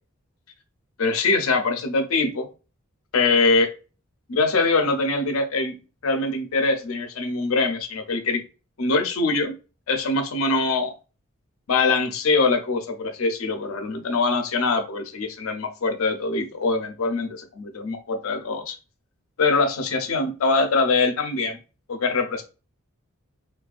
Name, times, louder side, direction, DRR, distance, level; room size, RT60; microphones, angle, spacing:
voice 1, 1.0-2.5 3.1-3.7 4.3-5.8 6.0-8.4 8.8-9.5 9.9-10.9 11.7-18.8 19.4-21.6 21.9-22.4, left 3 dB, 75° left, 6 dB, 0.5 m, -23 dB
2.4 x 2.2 x 2.3 m, 0.32 s
head